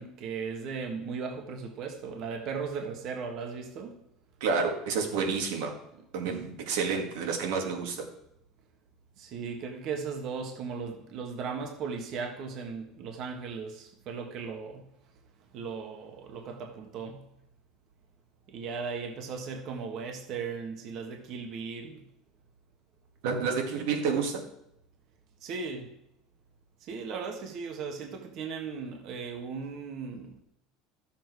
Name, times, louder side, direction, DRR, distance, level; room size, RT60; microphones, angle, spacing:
voice 1, 0.0-4.0 9.2-14.9 15.5-17.3 18.5-22.0 25.4-25.9 26.8-30.4, right 5 dB, 45° right, 1.4 m, -37 dB
voice 2, 4.4-5.8 6.1-8.1 23.2-24.4, right 5 dB, 80° right, 2.2 m, -29 dB
13.0 x 7.3 x 4.7 m
cardioid pair, 150°, 0 cm